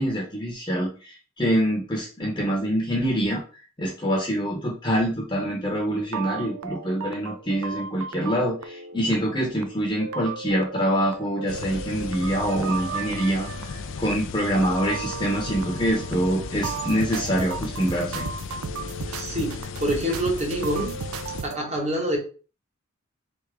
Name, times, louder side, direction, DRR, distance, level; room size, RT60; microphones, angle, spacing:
voice 1, 0.0-3.4 3.8-18.2, equal, 20° left, -2 dB, 0.9 m, -25 dB
sound 1, 5.8-21.6, right 5 dB, 80° right, 0.5 m, -35 dB
Tape Hiss from Blank Tape - Dolby B-NR, 11.5-21.4, left 5 dB, 60° left, 0.3 m, -36 dB
voice 2, 19.1-20.9 21.4-22.2, right 1 dB, 30° right, 1 dB, 1.2 m, -26 dB
4.0 x 3.6 x 3.4 m, 0.37 s
head